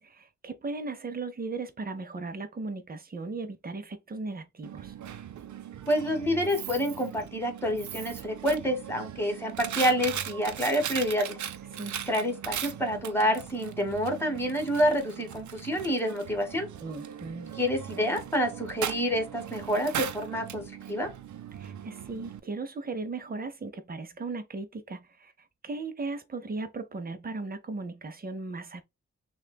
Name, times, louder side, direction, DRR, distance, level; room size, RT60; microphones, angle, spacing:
voice 1, 0.0-4.9 11.7-12.0 16.8-17.6 21.5-25.3 25.6-28.8, right 3 dB, 30° right, 0.7 m, -37 dB
Coin (dropping), 4.6-22.4, right 9 dB, 80° right, 0.5 m, -39 dB
voice 2, 5.9-11.4 12.1-16.7 17.6-21.1, equal, 10° left, 1.2 m, -28 dB
6.3 x 2.3 x 2.2 m
wide cardioid pair, 145°, 29 cm